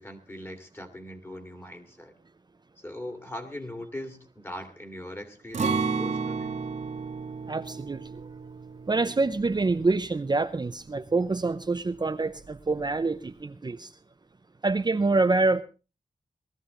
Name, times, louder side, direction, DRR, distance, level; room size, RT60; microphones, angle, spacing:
voice 1, 0.0-2.1 2.8-6.6, left 1 dB, 15° left, 6 dB, 2.4 m, -40 dB
Acoustic guitar, 5.5-11.4 11.7-11.9 12.4-12.9, right 5 dB, 60° right, 1.7 m, -33 dB
voice 2, 7.5-8.0 8.9-13.9 14.6-15.6, right 3 dB, 30° right, 8 dB, 0.6 m, -26 dB
19.0 x 13.0 x 3.8 m, 0.32 s
wide cardioid pair, 100°, 14 cm